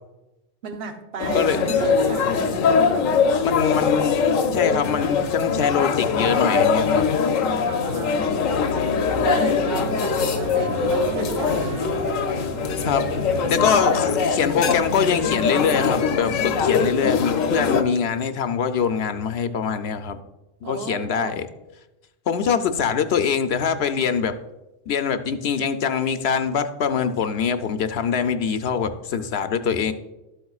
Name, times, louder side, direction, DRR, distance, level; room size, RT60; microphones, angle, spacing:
voice 1, 0.6-2.6 7.6-8.4 9.2-12.0 20.6-21.4, right 4 dB, 55° right, 5 dB, 1.1 m, -33 dB
sound 1, 1.2-17.8, left 5 dB, 90° left, 1.1 m, -22 dB
voice 2, 1.3-1.7 3.4-4.2 4.5-7.0 12.8-13.1 13.5-20.2 20.6-21.5 22.3-24.4 24.9-29.9, left 6 dB, 65° left, 9 dB, 0.8 m, -23 dB
sound 2, 8.0-16.5, equal, 75° right, 1.6 m, -32 dB
12.5 x 8.0 x 2.4 m, 0.99 s
omnidirectional pair, 1.3 m